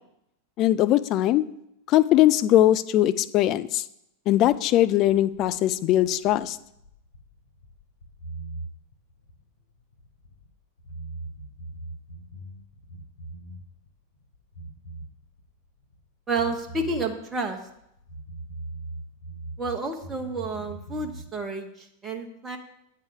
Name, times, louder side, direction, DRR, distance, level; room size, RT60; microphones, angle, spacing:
voice 1, 0.6-1.4 1.9-3.8 4.3-6.6, left 13 dB, 35° left, 13 dB, 0.4 m, -20 dB
sound 1, 4.4-10.5 10.8-13.9 14.1-16.0 16.3-19.7 20.0-21.2, right 2 dB, 75° left, 1.5 m, -41 dB
voice 2, 16.3-17.6 19.6-22.6, right 3 dB, 20° right, 3 dB, 1.0 m, -30 dB
8.9 x 4.7 x 7.1 m, 0.78 s
figure-of-eight pair, 90°, 0 cm